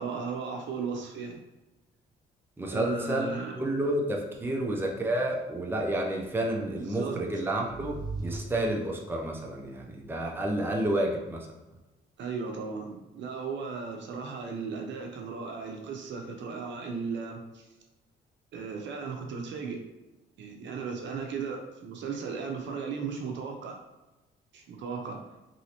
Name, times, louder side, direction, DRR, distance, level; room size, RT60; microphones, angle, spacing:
voice 1, 0.0-1.4 2.7-3.6 6.7-7.2 12.2-17.7 18.5-19.8 20.4-23.8 24.5-25.2, right 5 dB, 65° right, 3 dB, 0.6 m, -36 dB
voice 2, 2.6-3.3 3.6-11.5, right 1 dB, 10° right, 0 dB, 0.5 m, -30 dB
sound 1, 7.4-9.3, right 3 dB, 55° left, 1.0 m, -40 dB
3.1 x 2.7 x 2.8 m, 1.0 s
cardioid pair, 90°, 20 cm